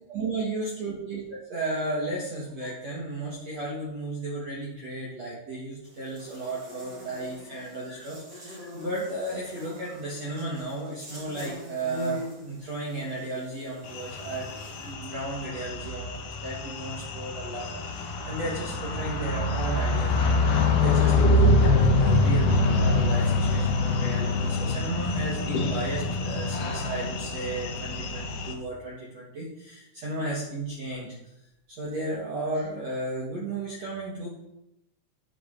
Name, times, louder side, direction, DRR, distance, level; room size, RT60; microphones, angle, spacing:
voice 1, 0.1-31.1 31.8-34.3, right 2 dB, 55° right, -5 dB, 1.8 m, -34 dB
Buzz, 5.8-14.9, right 1 dB, 25° right, 2.8 m, -43 dB
sound 1, 13.9-28.5, left 2 dB, 80° left, 1.9 m, -25 dB
11.5 x 8.5 x 3.9 m, 0.87 s
omnidirectional pair, 5.7 m